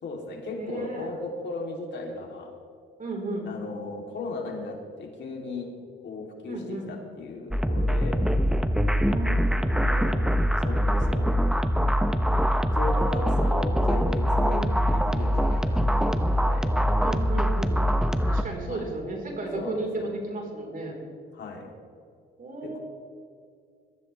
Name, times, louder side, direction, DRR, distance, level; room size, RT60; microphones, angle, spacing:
voice 1, 0.0-2.6 3.4-5.8 6.0-8.2 10.6-11.3 12.7-16.7 18.7-18.9 19.5-20.1 21.3-21.7 22.6-22.8, left 3 dB, 65° left, 0 dB, 3.3 m, -36 dB
voice 2, 0.6-1.1 3.0-3.5 6.5-6.9 9.0-10.2 12.9-13.3 14.4-14.7 17.0-17.8 18.3-20.9 22.4-22.8, right 2 dB, 45° right, 0 dB, 4.4 m, -34 dB
sound 1, 7.5-18.4, equal, 5° right, 0.8 m, -23 dB
22.0 x 14.5 x 3.4 m, 2.3 s
cardioid pair, 90°, 20 cm